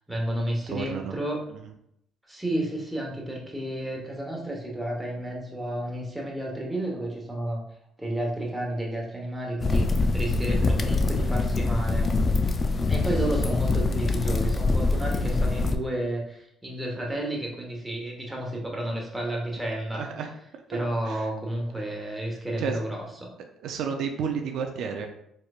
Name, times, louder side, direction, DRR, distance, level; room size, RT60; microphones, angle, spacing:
voice 1, 0.1-1.4 2.3-7.6 8.0-12.1 12.9-20.0 20.7-23.0, right 1 dB, 10° right, -2 dB, 1.1 m, -31 dB
voice 2, 0.7-1.1 1.5-1.6 19.9-20.3 21.0-21.3 22.6-22.8 23.6-25.1, right 6 dB, 75° right, 4 dB, 0.4 m, -31 dB
sound 1, 9.6-15.8, left 3 dB, 35° left, 0.3 m, -24 dB
4.3 x 3.2 x 2.4 m, 0.76 s
cardioid pair, 100°, 0 cm